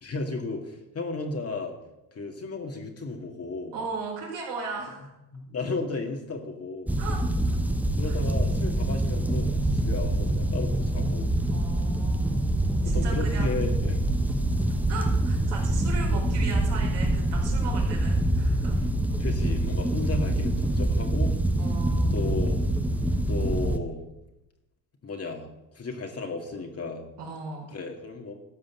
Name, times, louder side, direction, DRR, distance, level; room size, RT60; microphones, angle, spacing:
voice 1, 0.0-1.7 2.1-3.7 5.3-6.9 8.0-11.3 12.8-14.0 19.2-21.3 22.1-22.6 23.3-24.0 25.0-27.0 27.7-28.3, left 3 dB, 30° left, 3 dB, 2.1 m, -34 dB
voice 2, 3.7-5.1 7.0-7.7 8.0-8.1 11.5-12.4 12.8-13.6 14.9-18.8 21.6-22.2 27.2-27.7, right 4 dB, 60° right, -2 dB, 4.7 m, -37 dB
sound 1, 6.9-23.8, right 1 dB, 5° right, 1.0 m, -25 dB
13.0 x 5.1 x 7.5 m, 0.92 s
supercardioid pair, 80°, 47 cm